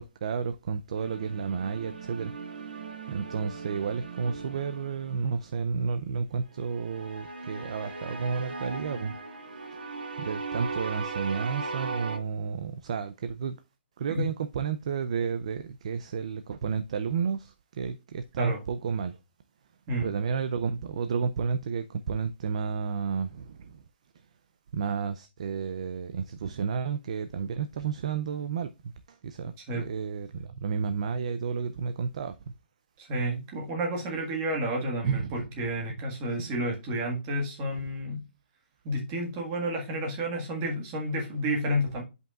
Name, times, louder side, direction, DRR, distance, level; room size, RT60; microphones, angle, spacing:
voice 1, 0.0-2.3 3.1-9.2 10.2-13.6 14.0-19.2 20.0-23.8 24.7-28.7 29.1-32.3 35.0-35.3, right 6 dB, 35° right, 0.4 m, -31 dB
sound 1, 1.0-5.3 6.7-12.2, right 4 dB, 60° right, 1.6 m, -38 dB
voice 2, 29.6-29.9 33.0-38.2 38.8-42.0, right 1 dB, 15° right, 1.7 m, -31 dB
10.0 x 5.4 x 2.4 m
hypercardioid pair, 175°, 6 cm